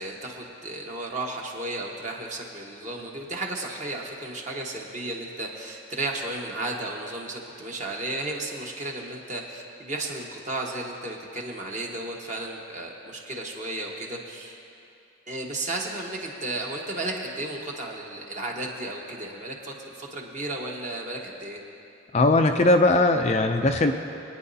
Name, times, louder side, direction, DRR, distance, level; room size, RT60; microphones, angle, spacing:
voice 1, 0.0-14.6 15.3-21.6, right 2 dB, 35° right, -1 dB, 1.3 m, -34 dB
voice 2, 22.1-23.9, left 2 dB, 30° left, 5 dB, 0.4 m, -19 dB
23.0 x 9.7 x 2.8 m, 2.7 s
head